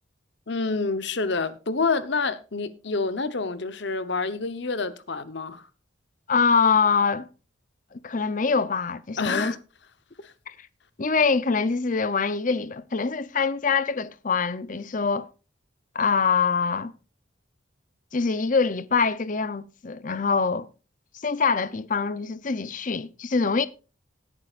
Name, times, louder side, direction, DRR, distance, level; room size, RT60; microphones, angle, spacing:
voice 1, 0.5-5.6 9.2-9.6 10.2-10.3, left 4 dB, 60° left, 0.9 m, -28 dB
voice 2, 6.3-7.3 7.9-9.6 10.5-10.7 11.0-15.3 15.9-16.9 18.1-20.7 21.2-23.7, left 5 dB, 40° left, 0.6 m, -24 dB
17.5 x 9.5 x 2.5 m
head